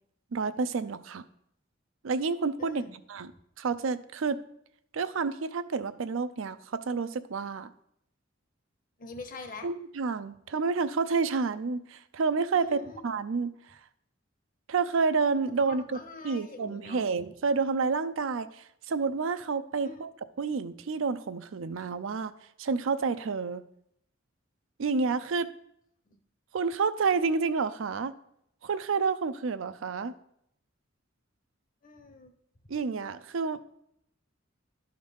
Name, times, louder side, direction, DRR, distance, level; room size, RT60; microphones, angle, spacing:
voice 1, 0.3-1.2 2.0-2.8 3.1-3.3 3.6-4.4 4.9-7.7 9.6-12.8 13.0-13.5 14.7-16.0 16.2-20.1 20.4-22.3 22.6-23.6 24.8-25.5 26.5-28.1 28.6-30.2 32.7-33.6, right 4 dB, 80° right, 12 dB, 0.5 m, -29 dB
voice 2, 2.6-3.0 9.0-9.7 12.5-13.0 15.7-17.1 19.8-20.1 26.1-26.2 31.8-32.3, left 3 dB, 45° left, 8 dB, 1.0 m, -44 dB
11.5 x 4.0 x 5.2 m, 0.74 s
head